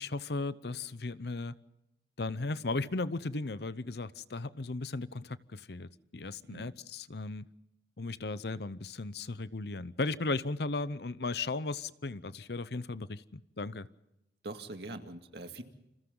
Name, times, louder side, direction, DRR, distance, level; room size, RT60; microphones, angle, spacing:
voice 1, 0.0-1.5 2.2-7.5 8.0-13.9, left 3 dB, 65° left, 16 dB, 0.8 m, -36 dB
voice 2, 6.4-6.7 14.4-15.6, right 2 dB, 65° right, 6 dB, 2.2 m, -43 dB
29.0 x 27.0 x 3.9 m, 0.89 s
head